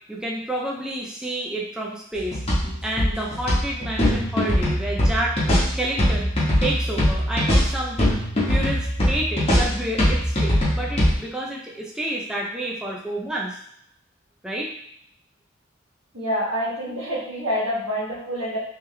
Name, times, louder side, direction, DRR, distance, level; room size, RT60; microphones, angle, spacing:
voice 1, 0.1-2.4 2.8-5.4 5.8-8.0 8.5-13.6 14.4-14.7, right 1 dB, 5° right, -4 dB, 0.5 m, -29 dB
sound 1, 2.2-11.1, equal, 30° left, 1.2 m, -21 dB
voice 2, 16.1-18.6, equal, 80° right, -5 dB, 1.4 m, -27 dB
3.5 x 3.1 x 3.3 m, 0.72 s
head